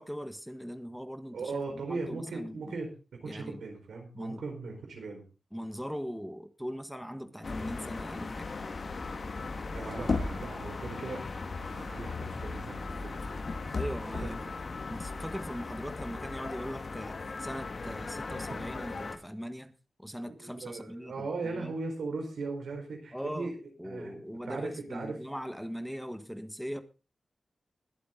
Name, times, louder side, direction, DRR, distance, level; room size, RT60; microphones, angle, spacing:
voice 1, 0.0-2.7 3.2-3.6 4.1-4.4 5.5-8.5 13.7-14.4 14.9-19.7 20.0-21.7 23.1-23.5 23.8-26.8, equal, ahead, 1.5 m, -40 dB
voice 2, 1.3-2.9 3.2-5.2 9.7-13.2 14.1-14.5 20.3-23.6 23.8-25.2, right 3 dB, 90° right, 4.5 m, -38 dB
sound 1, 7.4-19.2, left 3 dB, 60° left, 1.8 m, -37 dB
21.0 x 7.8 x 3.8 m
cardioid pair, 55°, 0 cm